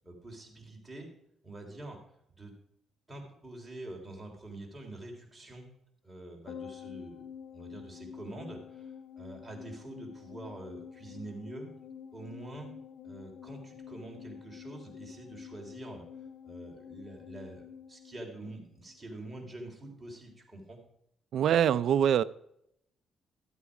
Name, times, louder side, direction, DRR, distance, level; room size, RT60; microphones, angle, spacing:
voice 1, 0.0-1.1 1.4-2.0 2.3-2.5 3.1-5.7 6.0-7.3 7.5-11.7 12.1-12.7 13.0-16.0 16.4-20.8, right 2 dB, 10° right, 3.6 m, -46 dB
sound 1, 6.5-19.0 19.2-19.3, left 7 dB, 85° left, 1.0 m, -48 dB
voice 2, 21.3-22.2, right 9 dB, 70° right, 0.4 m, -24 dB
13.0 x 8.2 x 4.9 m
cardioid pair, 90°, 0 cm